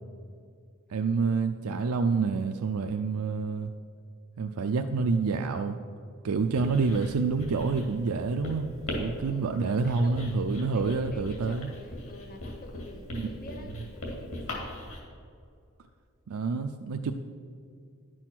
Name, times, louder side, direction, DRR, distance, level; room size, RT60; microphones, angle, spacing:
voice 1, 0.9-3.7 4.4-5.8 6.2-11.7 13.1-13.3 16.3-17.1, right 4 dB, 80° right, 6 dB, 0.4 m, -28 dB
Writing, 6.4-15.0, left 1 dB, 65° left, 2.3 m, -40 dB
voice 2, 9.3-10.4 10.7-14.8, left 1 dB, 40° left, 6 dB, 1.0 m, -47 dB
11.0 x 6.3 x 6.0 m, 2.4 s
head